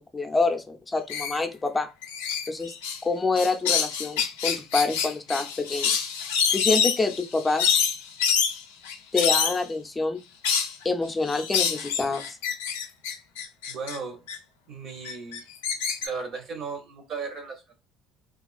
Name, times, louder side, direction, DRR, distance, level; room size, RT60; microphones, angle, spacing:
voice 1, 0.0-1.9 2.5-2.7 3.0-6.0 6.5-7.8 9.1-10.2 10.8-12.4, left 3 dB, 20° left, 4 dB, 0.5 m, -27 dB
sound 1, 1.1-1.4 2.0-3.0 3.4-9.6 10.4-10.7 11.3-14.0 14.3-14.4 15.0-16.1, left 7 dB, 90° left, 0.4 m, -26 dB
voice 2, 13.7-14.2 14.7-15.4 16.0-17.7, right 5 dB, 55° right, 5 dB, 0.8 m, -36 dB
2.3 x 2.3 x 2.4 m, 0.26 s
hypercardioid pair, 70°, 0 cm